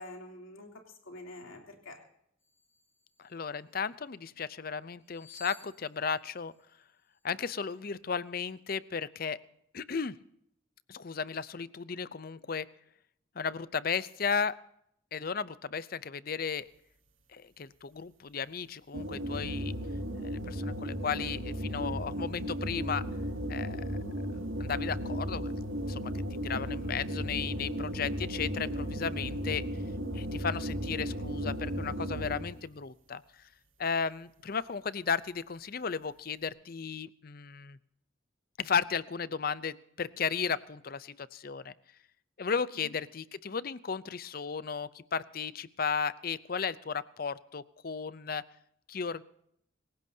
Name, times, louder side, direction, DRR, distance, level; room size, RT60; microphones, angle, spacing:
voice 1, 0.0-2.0 42.8-43.0, left 1 dB, 90° left, 2 dB, 3.1 m, -47 dB
sound 1, 2.4-3.9 5.0-7.2 7.6-7.8, left 2 dB, 15° left, 4.9 m, -56 dB
voice 2, 3.2-6.5 7.2-9.4 9.7-10.1 10.9-12.7 13.4-14.6 15.1-16.7 17.3-19.7 20.2-23.0 23.5-24.0 24.6-26.1 26.4-29.6 30.1-33.2 33.8-37.8 38.6-41.7 42.4-48.4 48.9-49.2, left 6 dB, 45° left, 17 dB, 0.6 m, -35 dB
sound 2, 18.9-32.6, equal, 85° right, 2.4 m, -35 dB
25.5 x 16.0 x 2.8 m, 0.71 s
head